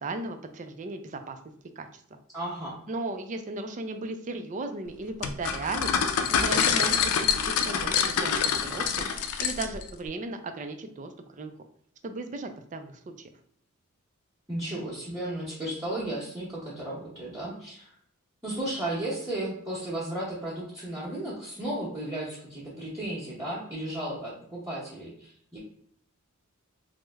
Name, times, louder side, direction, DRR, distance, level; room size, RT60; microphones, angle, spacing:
voice 1, 0.0-1.4 1.8-2.2 2.9-5.9 6.3-9.1 9.4-11.5 12.0-13.0, right 2 dB, 35° right, 7 dB, 0.4 m, -36 dB
voice 2, 2.3-2.8 14.5-17.9 18.4-25.6, right 1 dB, 15° right, -9 dB, 1.0 m, -34 dB
sound 1, 5.2-9.9, left 7 dB, 85° left, 0.4 m, -26 dB
3.2 x 2.0 x 3.4 m, 0.65 s
head